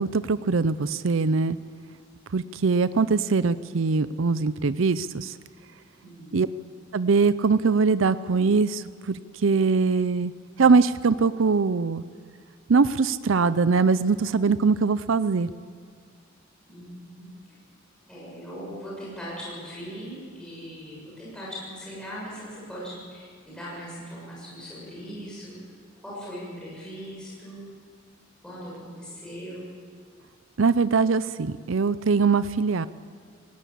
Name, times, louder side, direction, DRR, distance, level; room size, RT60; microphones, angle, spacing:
voice 1, 0.0-1.6 2.3-5.3 6.3-6.5 6.9-8.8 9.4-10.3 10.6-12.0 12.7-15.5 30.6-32.9, right 4 dB, 70° right, 15 dB, 0.5 m, -22 dB
voice 2, 6.0-6.4 16.7-17.3 18.1-25.6 26.0-27.7 28.4-29.6, equal, 5° left, -7 dB, 6.8 m, -39 dB
19.5 x 17.0 x 8.5 m, 2.1 s
head